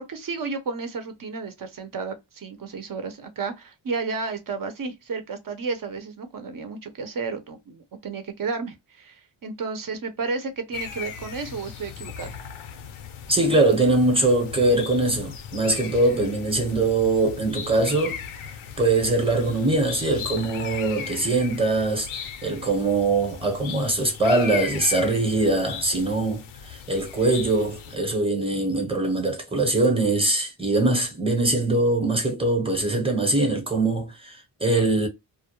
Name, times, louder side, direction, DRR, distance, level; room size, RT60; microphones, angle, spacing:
voice 1, 0.0-12.4, right 4 dB, 45° right, 0.8 m, -32 dB
sound 1, 10.7-28.0, left 8 dB, 80° left, 0.6 m, -38 dB
voice 2, 13.3-18.2 18.8-35.1, right 2 dB, 10° right, 0.9 m, -22 dB
2.3 x 2.1 x 2.9 m
cardioid pair, 105°, 48 cm